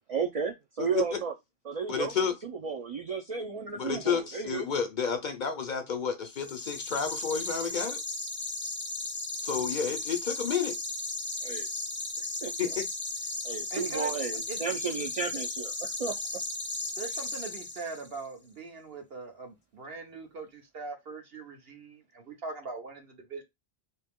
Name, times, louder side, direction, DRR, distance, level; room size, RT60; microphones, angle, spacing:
voice 1, 0.1-1.3 1.7-2.1 2.4-4.7 11.4-11.7 12.4-12.5 13.4-16.1, right 5 dB, 45° right, 0.5 m, -33 dB
voice 2, 0.8-1.2 1.9-2.3 3.8-8.0 9.4-10.8 12.6-12.9, left 6 dB, 55° left, 0.6 m, -31 dB
sound 1, 6.3-18.1, left 2 dB, 15° left, 0.6 m, -36 dB
voice 3, 13.7-14.1 14.5-14.6 17.0-23.4, right 3 dB, 70° right, 1.2 m, -41 dB
3.0 x 2.8 x 3.5 m
omnidirectional pair, 1.0 m